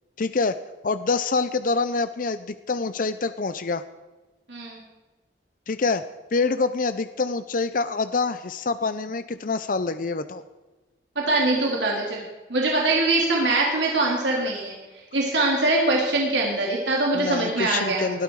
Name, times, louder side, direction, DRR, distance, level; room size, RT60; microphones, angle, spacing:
voice 1, 0.2-0.6 0.8-3.8 5.7-6.0 6.3-10.4 17.1-18.2, left 4 dB, 50° left, 12 dB, 0.6 m, -26 dB
voice 2, 4.5-4.8 11.2-12.2 12.5-14.8 15.1-18.1, right 2 dB, 80° right, -3 dB, 3.5 m, -23 dB
20.0 x 13.0 x 4.8 m, 1.2 s
head